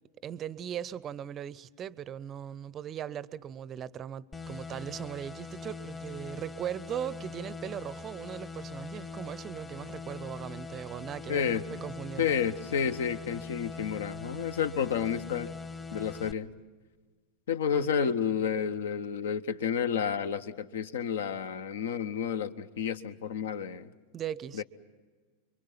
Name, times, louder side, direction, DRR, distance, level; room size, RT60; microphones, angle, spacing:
voice 1, 0.2-12.3 17.7-18.2 24.1-24.6, right 9 dB, 25° right, 0.7 m, -39 dB
sound 1, 4.3-16.3, left 4 dB, 15° left, 1.2 m, -42 dB
voice 2, 11.3-11.6 12.2-15.5 15.9-16.5 17.5-23.9 24.5-24.6, left 7 dB, 60° left, 1.0 m, -30 dB
29.5 x 23.5 x 5.8 m
figure-of-eight pair, 90°, 0 cm